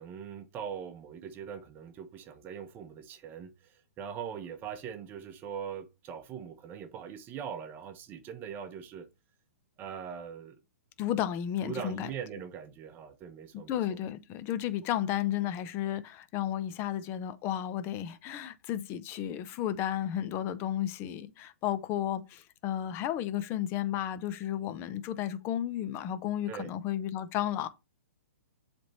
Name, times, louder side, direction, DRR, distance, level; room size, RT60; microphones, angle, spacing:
voice 1, 0.0-9.1 9.8-10.6 11.6-14.0 26.5-26.7, right 7 dB, 25° right, 0.8 m, -41 dB
voice 2, 11.0-12.1 13.7-27.7, left 11 dB, 30° left, 0.8 m, -33 dB
7.6 x 3.5 x 4.2 m
hypercardioid pair, 135°, 8 cm